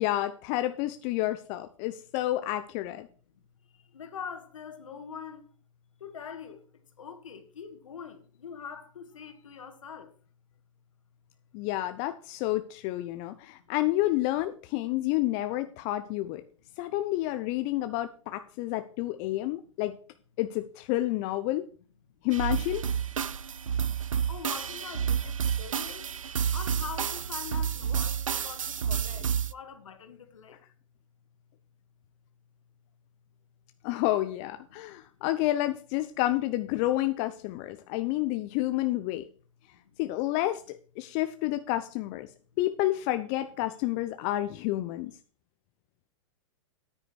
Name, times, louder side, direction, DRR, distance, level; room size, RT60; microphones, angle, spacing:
voice 1, 0.0-3.1 11.5-16.4 16.8-19.9 20.4-21.7 22.2-22.9 33.8-39.3 40.0-42.3 42.6-45.1, left 16 dB, 40° left, 0.8 m, -29 dB
voice 2, 3.9-5.5 6.0-6.7 7.0-10.1 24.3-26.1 26.5-30.6 34.7-34.8 37.8-37.9 39.8-40.0, left 7 dB, 75° left, 2.3 m, -43 dB
sound 1, 22.3-29.5, right 8 dB, 85° right, 0.5 m, -30 dB
9.9 x 9.3 x 4.7 m
hypercardioid pair, 110°, 16 cm